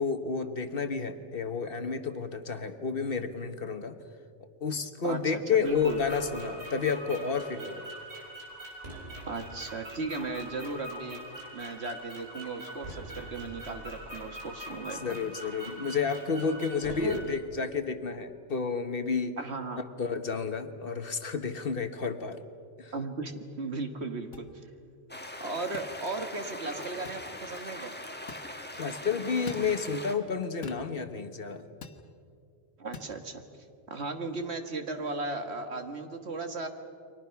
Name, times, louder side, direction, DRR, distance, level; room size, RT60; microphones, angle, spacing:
voice 1, 0.0-4.0 4.6-7.8 15.0-19.3 20.0-22.4 22.8-22.9 28.7-31.6, left 5 dB, 50° left, 9 dB, 1.3 m, -31 dB
voice 2, 5.0-6.0 9.3-11.2 11.5-15.1 17.0-17.3 19.4-19.9 22.9-24.6 25.4-28.0 32.8-33.4 33.9-36.7, right 3 dB, 60° right, 6 dB, 1.9 m, -36 dB
sound 1, 5.6-17.2, right 1 dB, 85° right, 5.0 m, -43 dB
sound 2, 24.3-24.5 25.7-25.9 27.1-27.3 28.3-28.5 29.5-29.7 30.6-30.9 31.8-32.0 32.9-33.1, left 5 dB, 85° left, 1.6 m, -43 dB
sound 3, 25.1-30.1, left 1 dB, 10° left, 1.6 m, -41 dB
30.0 x 23.5 x 5.9 m, 2.4 s
omnidirectional pair, 1.2 m